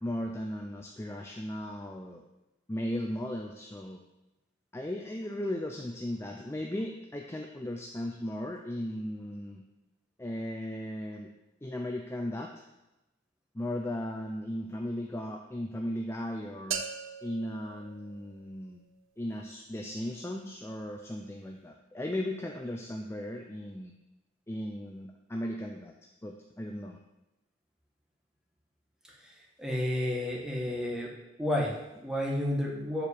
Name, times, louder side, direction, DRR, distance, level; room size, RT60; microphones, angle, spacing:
voice 1, 0.0-2.2 2.7-4.0 4.7-9.6 10.2-11.3 11.6-12.5 13.5-16.8 17.2-18.8 19.2-23.9 24.5-25.9 26.2-27.0, left 1 dB, 15° left, 1 dB, 0.5 m, -36 dB
sound 1, 16.7-18.7, right 6 dB, 80° right, 0.7 m, -39 dB
voice 2, 29.6-31.1 31.4-33.1, left 1 dB, 5° right, -2 dB, 1.4 m, -31 dB
7.4 x 4.7 x 6.8 m, 0.98 s
head